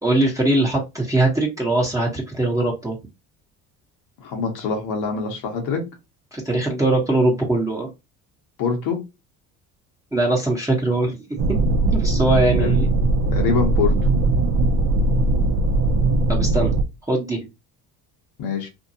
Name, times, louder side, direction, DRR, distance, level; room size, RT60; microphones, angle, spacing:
voice 1, 0.0-3.0 6.3-7.9 10.1-11.2 11.5-11.7 11.9-12.9 16.3-16.7 17.1-17.4, right 2 dB, 10° right, 1.0 m, -21 dB
voice 2, 4.2-5.8 8.6-9.0 12.6-12.8 13.3-13.9 18.4-18.7, left 5 dB, 70° left, 1.0 m, -24 dB
sound 1, 11.4-16.8, right 2 dB, 45° right, 0.6 m, -19 dB
2.7 x 2.2 x 2.7 m
supercardioid pair, 80°, 39 cm